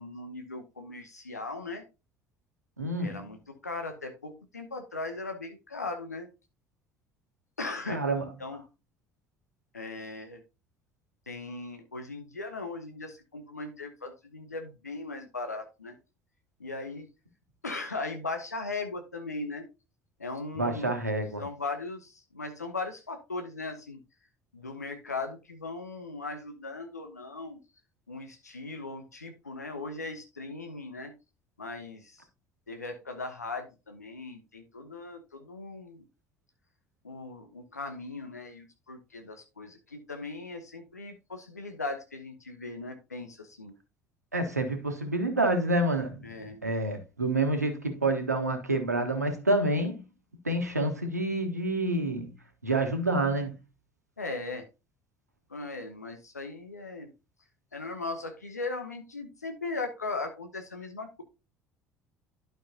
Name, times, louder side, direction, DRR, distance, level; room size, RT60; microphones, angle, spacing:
voice 1, 0.0-1.8 3.0-6.3 7.6-8.6 9.7-10.4 11.3-15.9 16.6-17.1 17.6-19.7 20.2-21.0 21.4-24.0 24.5-27.6 28.1-31.1 31.6-32.2 32.7-36.0 37.0-43.7 46.2-46.6 54.2-54.6 55.5-57.1 57.7-61.2, left 3 dB, 85° left, 0.9 m, -38 dB
voice 2, 2.8-3.3 7.9-8.3 20.5-21.4 44.3-46.3 46.6-50.0 50.4-52.3 52.6-53.5, right 2 dB, 85° right, 1.2 m, -28 dB
11.5 x 5.7 x 2.8 m
figure-of-eight pair, 60°, 9 cm